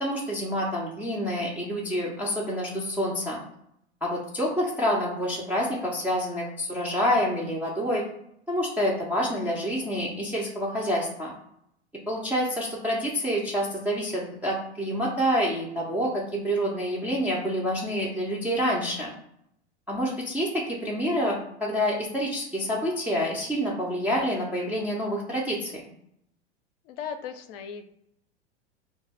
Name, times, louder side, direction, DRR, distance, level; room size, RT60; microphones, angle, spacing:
voice 1, 0.0-3.4 4.0-8.0 8.5-11.3 12.1-19.1 19.9-25.8, equal, 5° right, -5 dB, 0.3 m, -27 dB
voice 2, 26.8-27.9, left 7 dB, 55° left, 9 dB, 0.5 m, -37 dB
2.2 x 2.1 x 3.3 m, 0.75 s
hypercardioid pair, 95°, 34 cm